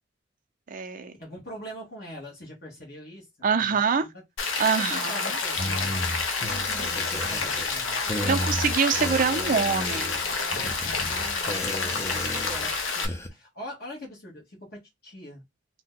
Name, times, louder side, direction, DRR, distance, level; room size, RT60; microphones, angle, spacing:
voice 1, 0.7-1.1 3.4-4.1 4.6-5.2 6.5-6.9 8.3-10.2, right 5 dB, 45° right, 0.4 m, -25 dB
voice 2, 1.2-4.2 4.8-6.0 6.4-8.5 10.0-15.4, equal, 50° left, 1.1 m, -43 dB
Rain, 4.4-13.1, left 4 dB, 80° left, 0.8 m, -29 dB
sound 1, 5.5-13.3, left 1 dB, 15° left, 0.5 m, -34 dB
2.7 x 2.1 x 3.6 m
head